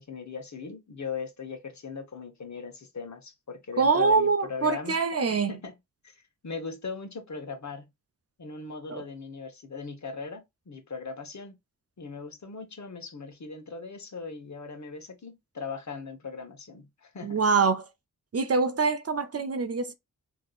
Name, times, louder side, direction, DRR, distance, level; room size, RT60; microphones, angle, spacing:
voice 1, 0.0-5.0 5.3-5.7 6.0-7.9 8.4-11.6 12.0-17.4 18.4-18.5, left 5 dB, 55° left, 1.2 m, -39 dB
voice 2, 3.8-5.5 8.9-9.0 17.2-17.8 18.3-19.9, right 4 dB, 45° right, 0.6 m, -24 dB
3.6 x 3.0 x 2.4 m
cardioid pair, 45°, 35 cm